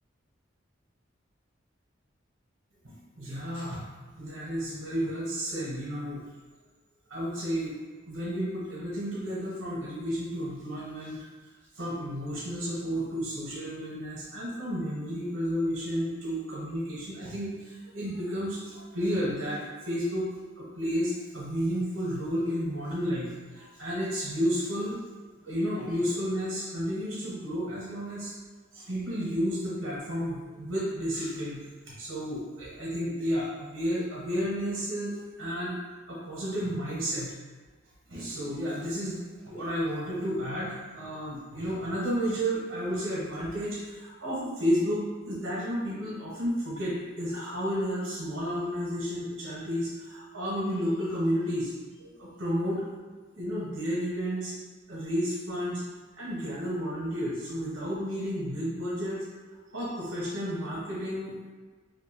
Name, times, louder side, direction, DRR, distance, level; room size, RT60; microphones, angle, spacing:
voice 1, 2.8-3.8 4.2-6.2 7.1-7.7 8.1-11.2 11.7-20.3 20.6-25.0 25.4-28.3 28.7-35.8 36.1-37.3 38.1-51.7 52.0-52.8 53.3-54.5 54.9-55.8 56.1-59.2 59.7-61.5, equal, 75° right, -6 dB, 0.9 m, -32 dB
2.6 x 2.2 x 2.8 m, 1.4 s
head